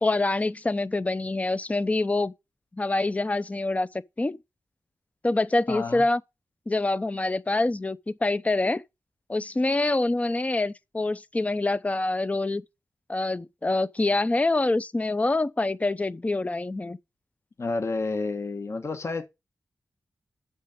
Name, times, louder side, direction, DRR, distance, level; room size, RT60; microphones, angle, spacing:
voice 1, 0.0-2.3 2.8-3.9 4.2-4.4 5.2-6.2 6.7-8.8 9.3-12.6 13.1-17.0, left 2 dB, 20° left, 0.6 m, -25 dB
voice 2, 5.7-6.0 17.6-19.2, left 3 dB, 45° left, 1.2 m, -30 dB
8.3 x 6.7 x 5.0 m
wide cardioid pair, 120°, 7 cm